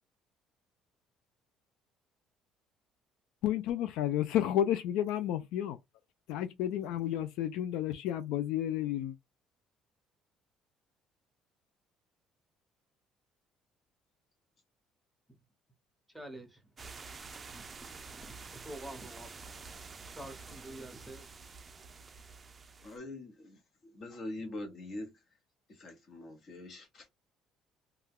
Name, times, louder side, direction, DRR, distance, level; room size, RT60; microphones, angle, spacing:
voice 1, 3.4-5.8 6.3-9.1, left 11 dB, 85° left, 0.3 m, -31 dB
voice 2, 16.1-16.6 17.5-17.6 18.1-18.3 18.6-19.3 20.0-21.2, right 1 dB, ahead, 0.9 m, -46 dB
sound 1, 16.8-23.0, right 4 dB, 30° right, 0.4 m, -48 dB
voice 3, 22.8-25.1 25.7-27.1, left 2 dB, 45° left, 1.0 m, -44 dB
2.3 x 2.2 x 3.5 m
cardioid pair, 105°, 0 cm